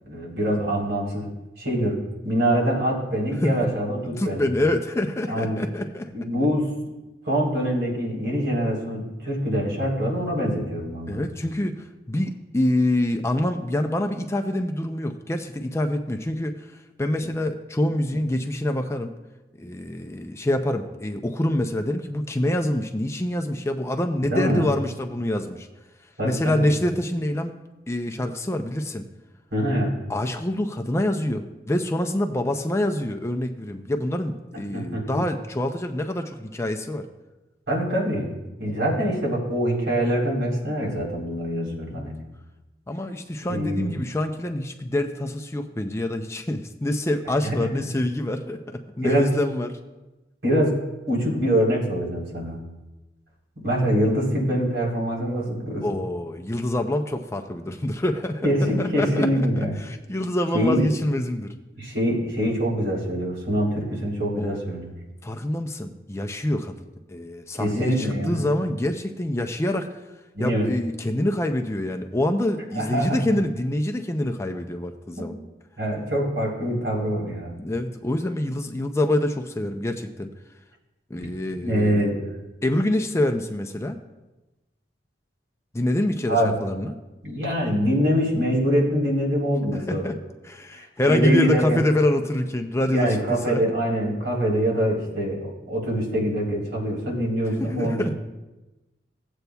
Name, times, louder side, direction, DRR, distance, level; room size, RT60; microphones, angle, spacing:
voice 1, 0.0-1.3 1.6-4.5 5.3-5.6 6.1-6.7 7.3-11.2 24.2-24.7 26.2-26.7 29.5-29.9 34.7-35.2 37.7-38.3 38.6-42.2 43.5-43.9 47.4-47.6 49.0-49.3 50.4-50.8 51.1-52.6 53.6-55.9 58.4-59.7 60.5-60.9 61.8-64.9 67.6-68.5 70.3-70.7 72.8-73.2 75.2-75.3 75.8-77.5 81.6-82.3 86.3-86.5 87.2-90.0 90.7-90.8 91.1-91.8 92.9-98.1, equal, 70° right, -3 dB, 3.6 m, -24 dB
voice 2, 4.2-6.1 11.1-16.5 17.0-19.1 19.6-25.7 26.2-27.5 27.9-29.0 30.1-37.1 41.9-42.1 42.9-49.8 55.8-59.3 59.6-61.5 64.4-64.6 65.2-69.9 70.4-75.4 77.6-80.3 81.1-82.1 82.6-84.0 85.7-87.0 89.7-90.2 90.4-93.6 97.6-98.1, left 1 dB, 15° left, 5 dB, 0.5 m, -26 dB
17.5 x 8.0 x 2.3 m, 1.1 s
head